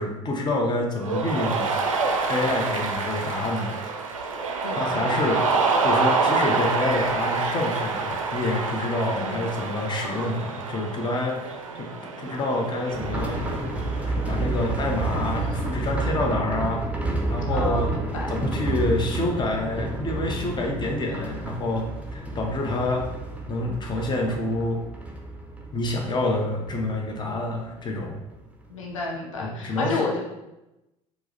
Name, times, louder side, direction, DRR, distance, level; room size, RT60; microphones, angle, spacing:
voice 1, 0.0-1.7 2.3-3.8 4.7-5.4 5.8-11.4 11.7-11.9 12.2-13.4 14.1-16.9 17.3-17.9 18.3-23.0 23.5-24.8 25.7-28.2 29.4-30.1, left 2 dB, 25° left, 1 dB, 0.8 m, -27 dB
Cheering, 1.0-15.8, right 4 dB, 80° right, 0.4 m, -27 dB
voice 2, 4.6-5.3 8.1-8.2 9.2-9.5 17.5-18.3 28.7-30.2, left 3 dB, 75° left, -1 dB, 0.6 m, -31 dB
sound 1, 12.9-28.4 28.7-28.8 29.1-29.2, right 2 dB, 10° right, 0.6 m, -30 dB
4.6 x 2.1 x 4.1 m, 0.96 s
figure-of-eight pair, 60°, 17 cm